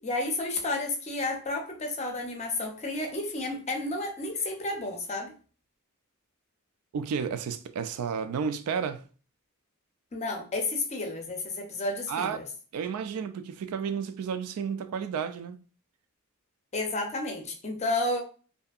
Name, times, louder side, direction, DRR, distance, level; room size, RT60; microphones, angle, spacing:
voice 1, 0.0-5.3 10.1-12.4 16.7-18.2, left 2 dB, 30° left, 0.5 m, -31 dB
voice 2, 6.9-9.0 12.1-12.5 12.7-15.6, right 6 dB, 80° right, 0.3 m, -32 dB
2.6 x 2.5 x 2.3 m
head